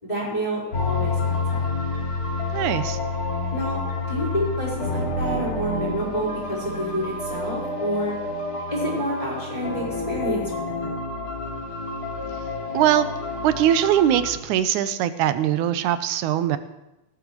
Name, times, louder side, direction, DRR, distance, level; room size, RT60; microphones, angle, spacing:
voice 1, 0.0-1.7 3.5-3.8 4.1-8.2 8.7-10.4 10.8-10.9, equal, 10° left, -7 dB, 5.0 m, -28 dB
sound 1, 0.7-14.4, left 3 dB, 35° left, 2.3 m, -29 dB
voice 2, 2.5-3.0 12.7-13.1 13.4-16.6, right 11 dB, 90° right, 11 dB, 2.1 m, -21 dB
18.0 x 13.0 x 3.2 m, 0.95 s
omnidirectional pair, 3.4 m